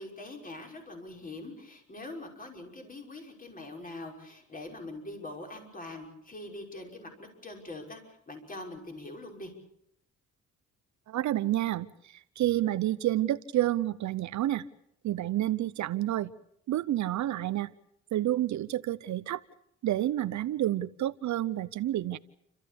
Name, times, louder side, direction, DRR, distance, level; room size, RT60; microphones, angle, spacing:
voice 1, 0.0-9.5, left 2 dB, 30° left, 2 dB, 5.7 m, -43 dB
voice 2, 11.1-14.6 15.0-16.3 16.7-17.7 18.1-19.4 19.8-22.2, right 14 dB, 70° right, 14 dB, 0.8 m, -29 dB
29.5 x 14.0 x 8.5 m, 0.76 s
cardioid pair, 90°, 30 cm